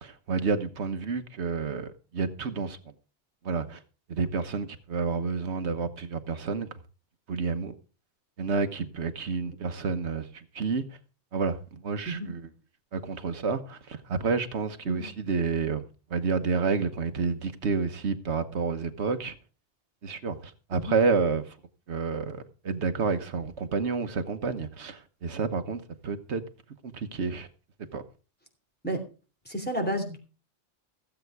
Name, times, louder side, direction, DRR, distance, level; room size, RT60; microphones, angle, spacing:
voice 1, 0.0-2.9 3.4-3.8 4.1-6.7 7.3-7.7 8.4-11.0 11.3-12.4 12.9-15.8 16.1-19.4 20.0-21.6 21.9-26.5 26.8-27.5 27.9-28.0, right 5 dB, 70° right, 1.4 m, -29 dB
voice 2, 29.4-30.2, right 1 dB, 10° left, 3.0 m, -31 dB
16.0 x 8.0 x 4.7 m
omnidirectional pair, 1.2 m